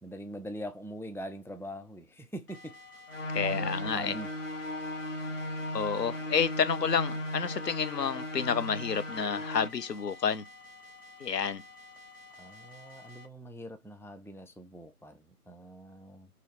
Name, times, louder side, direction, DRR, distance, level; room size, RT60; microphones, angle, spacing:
voice 1, 0.0-2.8 3.1-4.3 12.4-16.3, equal, 5° left, 0.3 m, -43 dB
sound 1, 2.5-13.3, left 2 dB, 75° left, 1.0 m, -52 dB
sound 2, 3.1-9.7, left 1 dB, 50° left, 0.7 m, -36 dB
voice 2, 3.3-4.1 5.7-10.4 11.2-11.6, left 6 dB, 90° left, 0.7 m, -30 dB
3.0 x 2.8 x 3.0 m
figure-of-eight pair, 180°, 47 cm